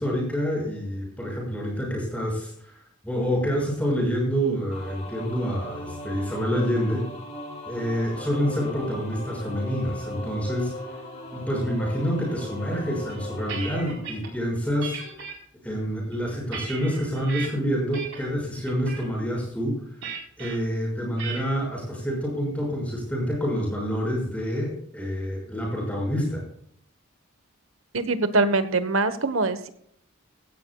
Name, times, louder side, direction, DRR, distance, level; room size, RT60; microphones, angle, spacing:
voice 1, 0.0-2.5 3.0-7.0 7.7-10.7 11.3-15.0 15.6-19.8 20.4-26.4, equal, 5° left, -2 dB, 6.2 m, -27 dB
sound 1, 4.7-13.8, left 1 dB, 35° left, 3.7 m, -38 dB
sound 2, 13.1-14.3 14.8-15.3 16.0-17.5 17.9-18.3 18.7-19.0 20.0-20.6 21.2-21.6, right 5 dB, 65° right, 4.2 m, -37 dB
voice 2, 27.9-29.7, right 3 dB, 80° right, 11 dB, 1.3 m, -23 dB
16.5 x 14.5 x 2.4 m, 0.65 s
head